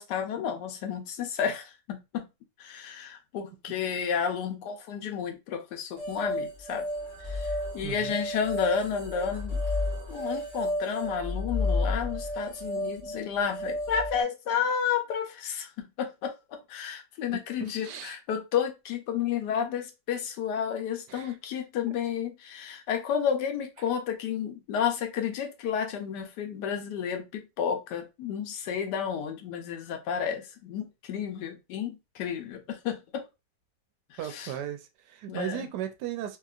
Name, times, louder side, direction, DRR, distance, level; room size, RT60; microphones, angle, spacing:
voice 1, 0.0-2.3 2.6-6.9 7.2-9.6 10.1-33.2 34.1-34.5 35.3-35.7, left 7 dB, 80° left, 1.2 m, -31 dB
sound 1, 6.0-14.2, left 1 dB, 25° right, 1.3 m, -32 dB
voice 2, 7.8-8.2 17.3-18.2 21.1-21.4 34.2-36.4, right 11 dB, 80° right, 1.2 m, -37 dB
2.8 x 2.8 x 2.3 m
omnidirectional pair, 1.8 m